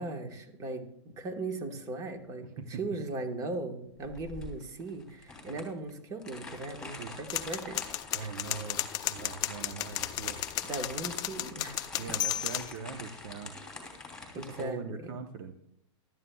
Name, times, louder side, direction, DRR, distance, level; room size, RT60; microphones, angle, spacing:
voice 1, 0.0-7.8 8.2-8.4 10.6-12.2 14.3-15.2, right 2 dB, 20° right, 6 dB, 1.4 m, -38 dB
sound 1, 4.0-14.6, left 3 dB, 5° left, 3.0 m, -46 dB
sound 2, 7.3-12.7, left 13 dB, 25° left, 0.6 m, -34 dB
voice 2, 8.1-8.8 9.1-10.4 12.0-13.6 14.3-15.5, right 5 dB, 45° right, 7 dB, 0.8 m, -41 dB
16.5 x 12.5 x 2.3 m, 0.80 s
supercardioid pair, 155°, 15 cm